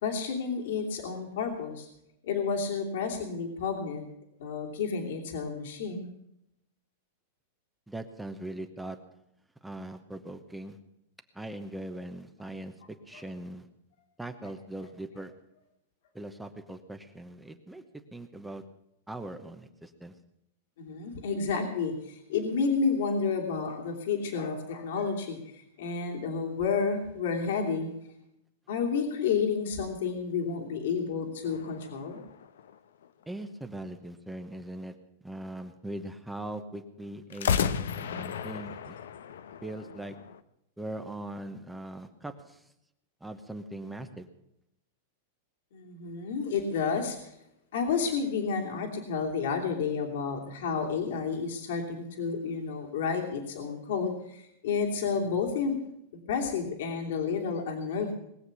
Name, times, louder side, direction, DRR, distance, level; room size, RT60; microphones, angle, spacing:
voice 1, 0.0-1.9 2.2-4.1 4.4-6.1 13.1-13.2 20.8-27.9 28.7-32.2 45.7-47.3 47.7-55.7 56.3-58.1, left 5 dB, 70° left, 2 dB, 2.8 m, -31 dB
voice 2, 7.9-9.0 9.6-10.8 11.3-12.8 13.1-13.7 14.2-15.3 16.1-18.6 19.1-20.1 33.3-34.9 35.2-38.9 39.6-40.1 40.8-42.6 43.2-44.3, right 1 dB, 5° right, 7 dB, 1.0 m, -40 dB
sound 1, 31.4-33.2 37.3-40.4, left 7 dB, 85° left, 1.0 m, -34 dB
20.5 x 7.5 x 8.2 m, 0.80 s
supercardioid pair, 150°, 0 cm